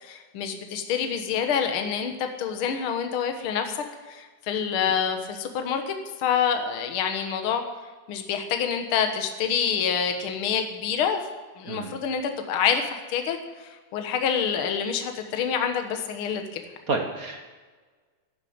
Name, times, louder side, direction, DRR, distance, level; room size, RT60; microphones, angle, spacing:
voice 1, 0.0-7.6 8.1-11.2 11.6-16.6, left 7 dB, 50° left, 5 dB, 1.9 m, -27 dB
voice 2, 11.7-12.0 16.9-17.5, right 3 dB, 60° right, 3 dB, 0.9 m, -30 dB
12.0 x 11.5 x 8.7 m, 1.4 s
omnidirectional pair, 3.5 m